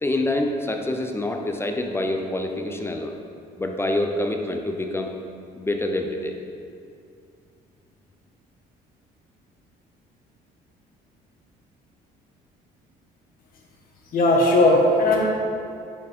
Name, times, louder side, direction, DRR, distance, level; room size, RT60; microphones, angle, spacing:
voice 1, 0.0-3.2 3.6-5.1 5.6-6.4, left 1 dB, 15° left, 3 dB, 0.6 m, -26 dB
voice 2, 14.1-15.2, left 2 dB, 55° left, -2 dB, 1.5 m, -17 dB
8.0 x 6.5 x 3.6 m, 2.4 s
cardioid pair, 110°, 17 cm